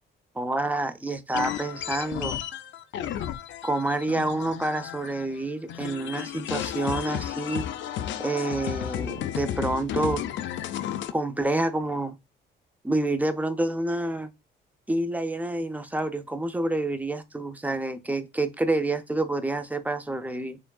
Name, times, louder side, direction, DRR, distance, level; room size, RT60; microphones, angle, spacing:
voice 1, 0.4-2.4 3.6-7.7 8.2-10.3 11.1-12.2 12.8-14.3 14.9-20.6, right 2 dB, 10° right, 0.5 m, -28 dB
sound 1, 1.3-5.4 5.7-11.1, left 10 dB, 70° left, 0.5 m, -33 dB
4.4 x 3.6 x 2.3 m
cardioid pair, 90°, 20 cm